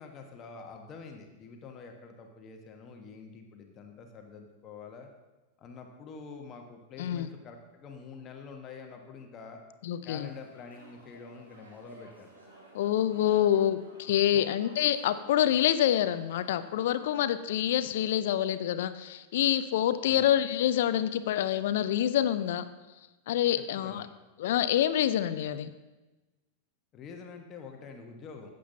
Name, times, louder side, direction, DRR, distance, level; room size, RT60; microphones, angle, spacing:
voice 1, 0.0-5.1 5.6-9.6 10.0-12.3 14.3-14.6 20.0-20.3 23.6-24.0 26.9-28.5, left 5 dB, 30° left, 3 dB, 1.3 m, -46 dB
voice 2, 7.0-7.3 9.8-10.3 12.7-22.6 23.3-24.1 24.4-25.7, left 11 dB, 55° left, 12 dB, 0.6 m, -27 dB
sound 1, 10.1-17.2, right 2 dB, 70° right, 3.2 m, -55 dB
15.0 x 7.7 x 2.8 m, 1.1 s
figure-of-eight pair, 90°, 0 cm